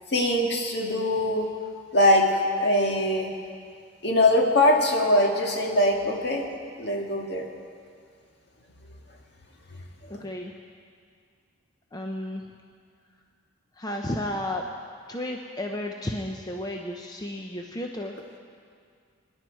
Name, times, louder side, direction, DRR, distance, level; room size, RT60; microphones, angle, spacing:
voice 1, 0.1-1.5 1.9-2.3 2.6-3.4 4.0-6.4 6.8-7.5 10.1-10.3, left 1 dB, 55° left, 1 dB, 1.8 m, -22 dB
voice 2, 10.1-10.5 11.9-12.4 13.8-14.6 15.1-18.2, left 1 dB, 20° left, 2 dB, 0.6 m, -33 dB
24.0 x 10.5 x 4.5 m, 2.2 s
head